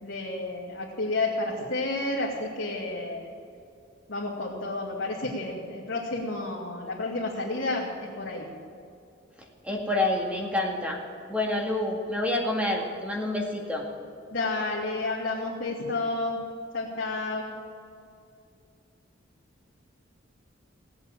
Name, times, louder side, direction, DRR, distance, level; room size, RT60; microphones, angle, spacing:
voice 1, 0.0-3.3 4.1-8.5 14.3-16.4 16.7-17.5, left 2 dB, 65° left, -5 dB, 2.3 m, -31 dB
voice 2, 9.6-11.0 11.3-13.9, left 2 dB, 5° right, 0 dB, 2.0 m, -28 dB
17.5 x 8.3 x 8.9 m, 2.5 s
head